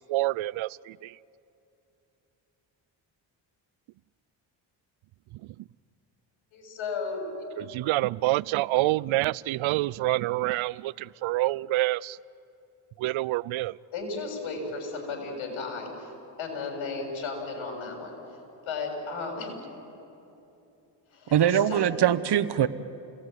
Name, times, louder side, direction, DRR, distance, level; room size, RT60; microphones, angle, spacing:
voice 1, 0.1-1.2 5.4-5.5 7.6-12.2 13.0-13.8, right 17 dB, 75° right, 21 dB, 0.6 m, -27 dB
voice 2, 6.5-7.3 13.9-16.1 16.4-18.1 18.6-19.5 21.1-22.1, left 4 dB, 80° left, 2 dB, 7.2 m, -34 dB
voice 3, 21.3-22.7, right 10 dB, 55° right, 14 dB, 1.1 m, -22 dB
29.5 x 19.5 x 9.3 m, 2.9 s
cardioid pair, 65°, 47 cm